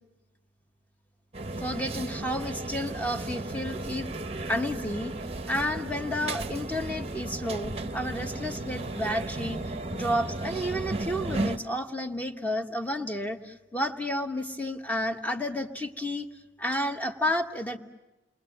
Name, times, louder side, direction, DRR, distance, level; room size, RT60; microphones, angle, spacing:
sound 1, 1.3-11.6, right 2 dB, 30° right, 0.8 m, -34 dB
voice 1, 1.6-4.1 4.5-5.1 5.5-9.6 9.9-16.3 16.6-17.8, left 1 dB, 10° left, 5 dB, 1.2 m, -31 dB
29.0 x 22.5 x 7.9 m, 1.1 s
head